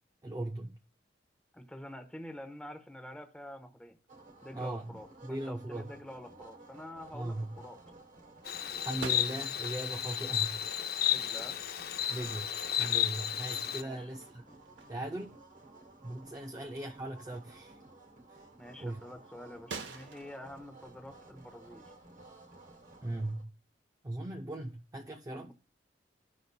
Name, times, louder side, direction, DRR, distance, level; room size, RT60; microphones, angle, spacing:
voice 1, 0.2-0.8 4.5-5.9 7.1-7.6 8.8-10.6 12.1-14.4 14.9-15.4 16.0-17.8 18.3-18.4 18.8-19.0 23.0-23.5 24.0-25.5, right 1 dB, 20° right, 0.4 m, -39 dB
voice 2, 1.5-4.0 4.4-7.8 11.0-11.6 13.8-14.1 16.5-16.6 18.6-21.8 25.3-25.5, left 1 dB, 5° left, 0.7 m, -47 dB
sound 1, 4.1-23.4, right 2 dB, 45° right, 1.1 m, -55 dB
Insect, 8.5-13.8, left 11 dB, 55° left, 0.5 m, -32 dB
sound 2, 9.0-9.9 11.7-11.8 12.3-13.0 13.4-15.3 15.7-15.9 16.5-16.6 19.7-20.4, right 4 dB, 80° right, 0.9 m, -46 dB
14.5 x 5.3 x 2.2 m
head